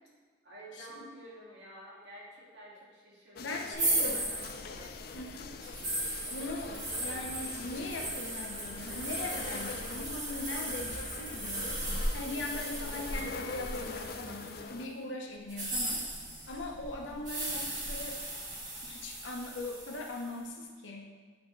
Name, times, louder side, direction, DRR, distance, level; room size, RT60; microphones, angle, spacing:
voice 1, 0.4-3.8 4.1-5.2, right 1 dB, 65° right, -6 dB, 1.9 m, -50 dB
sound 1, 3.3-14.9, left 4 dB, 50° left, 0.4 m, -45 dB
voice 2, 3.4-4.3 5.1-5.9 6.3-11.8 12.1-16.0 16.5-18.2 18.8-21.1, left 2 dB, 75° left, 0 dB, 0.9 m, -40 dB
Salt pour, 3.7-14.7 15.4-20.3, right 1 dB, 40° right, 1.6 m, -37 dB
sound 2, 6.5-8.2 8.6-10.4 10.7-12.4 12.8-14.5, equal, 5° left, 1.2 m, -52 dB
9.4 x 3.5 x 3.9 m, 1.5 s
head